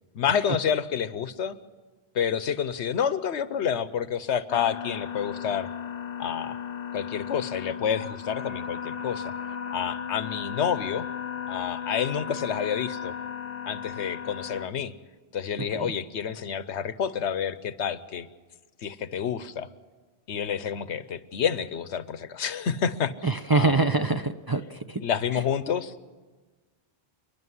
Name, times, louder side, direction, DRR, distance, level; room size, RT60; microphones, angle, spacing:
voice 1, 0.1-1.6 2.1-5.7 6.2-6.6 6.9-9.3 9.7-11.1 11.5-13.1 13.7-14.9 15.3-18.3 18.8-19.7 20.3-23.8 25.0-25.9, left 8 dB, 90° left, 14 dB, 1.1 m, -29 dB
sound 1, 4.5-14.7, left 8 dB, 60° left, 1.0 m, -35 dB
voice 2, 15.6-15.9 23.2-25.0, right 3 dB, 25° right, 8 dB, 0.6 m, -25 dB
29.0 x 10.5 x 9.7 m, 1.3 s
omnidirectional pair, 1.1 m